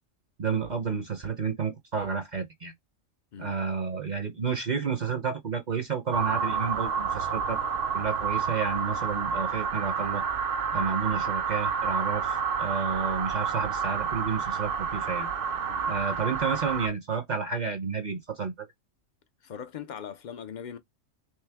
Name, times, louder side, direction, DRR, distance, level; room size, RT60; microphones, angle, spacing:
voice 1, 0.4-2.7 3.4-7.6 7.9-10.2 10.7-15.3 15.9-18.7, right 5 dB, 45° right, 0.6 m, -31 dB
sound 1, 6.1-16.9, right 6 dB, 70° right, 1.0 m, -29 dB
voice 2, 19.4-20.8, left 8 dB, 70° left, 0.4 m, -40 dB
3.3 x 3.2 x 3.3 m
omnidirectional pair, 1.3 m